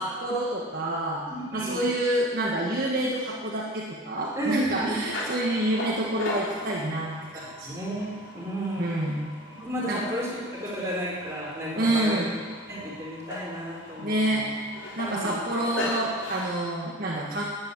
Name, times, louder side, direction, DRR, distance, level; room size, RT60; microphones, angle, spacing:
voice 1, 0.0-1.2 1.5-7.8 8.8-9.2 9.8-10.0 11.8-12.3 14.0-14.5 15.0-17.4, right 1 dB, 45° right, -4 dB, 1.7 m, -28 dB
voice 2, 1.3-1.8 4.4-5.0 7.6-8.9 9.6-12.2 12.7-14.5 15.0-15.4, right 1 dB, 15° right, -5 dB, 4.3 m, -32 dB
sound 1, 5.0-16.5, left 1 dB, 70° left, 3.4 m, -38 dB
13.0 x 8.9 x 9.2 m, 1.5 s
head